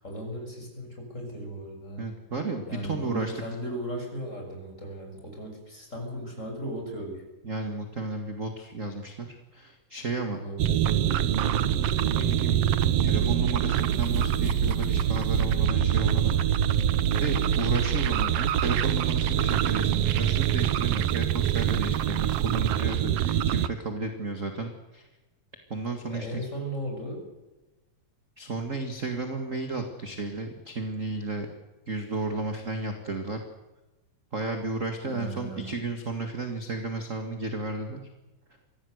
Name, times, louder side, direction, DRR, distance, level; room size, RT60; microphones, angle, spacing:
voice 1, 0.0-2.2 2.7-7.2 10.3-10.9 26.1-27.2 35.0-35.8, right 1 dB, 20° left, 2 dB, 6.7 m, -36 dB
voice 2, 2.0-3.4 7.4-9.3 9.5-10.4 12.1-12.6 13.0-16.4 17.2-25.1 25.7-26.4 28.4-31.5 31.9-33.4 34.3-38.0, right 3 dB, 30° right, 5 dB, 1.7 m, -33 dB
sound 1, 10.6-23.7, right 10 dB, 75° right, 1.4 m, -24 dB
24.0 x 16.5 x 8.0 m, 1.1 s
omnidirectional pair, 3.9 m